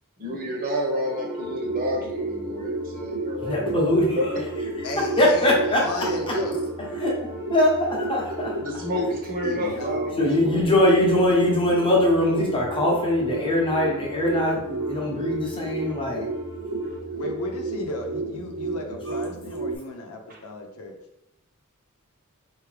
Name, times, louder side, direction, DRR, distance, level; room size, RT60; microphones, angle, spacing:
voice 1, 0.2-3.7 4.1-4.3 6.0-6.5 8.6-10.9 20.3-20.4, equal, 40° right, -1 dB, 1.1 m, -30 dB
sound 1, 1.0-17.0, equal, 15° right, 0.8 m, -38 dB
sound 2, 1.4-19.8, right 3 dB, 75° right, 0.4 m, -33 dB
voice 2, 3.4-4.2 5.2-5.8 6.3-6.4 7.0-7.2 7.5-8.5 10.2-16.3, left 1 dB, 25° left, -2 dB, 1.0 m, -22 dB
voice 3, 4.8-6.7 9.4-10.7 17.1-21.0, left 1 dB, 80° left, 3 dB, 0.7 m, -35 dB
4.7 x 2.8 x 3.3 m, 0.87 s
head